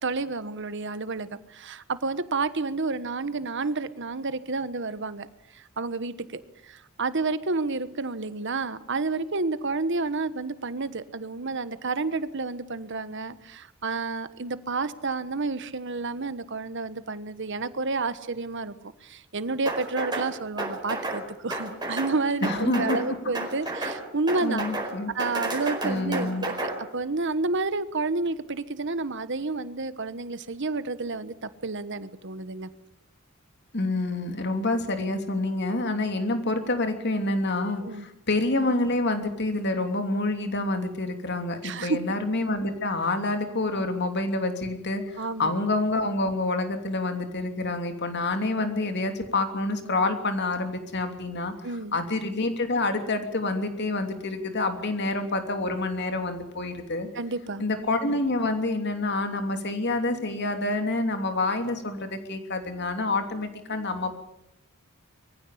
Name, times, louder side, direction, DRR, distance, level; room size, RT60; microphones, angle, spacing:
voice 1, 0.0-5.3 5.5-18.7 19.0-24.6 25.1-32.7 37.8-38.0 41.6-42.0 45.2-45.5 51.6-51.9 57.1-57.6, right 3 dB, 60° right, 13 dB, 1.2 m, -30 dB
sound 1, 19.7-20.3 20.6-21.2 21.5-22.1 22.4-23.1 23.3-24.0 24.3-24.9 25.2-26.7, right 2 dB, 20° right, 4.5 m, -31 dB
voice 2, 22.4-23.0 24.4-25.1 25.8-26.4 33.7-51.5 51.9-57.1 57.6-64.2, left 2 dB, 55° left, 6 dB, 3.1 m, -27 dB
23.0 x 15.5 x 8.5 m, 0.84 s
head